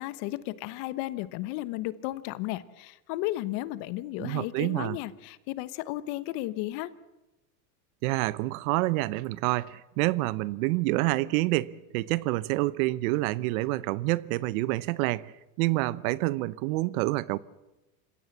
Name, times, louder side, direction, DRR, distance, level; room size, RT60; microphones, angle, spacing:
voice 1, 0.0-6.9, left 16 dB, 55° left, 1.2 m, -34 dB
voice 2, 4.2-5.0 8.0-15.3 15.6-17.4, right 19 dB, 65° right, 0.9 m, -27 dB
27.5 x 16.0 x 7.4 m
supercardioid pair, 125°, 45 cm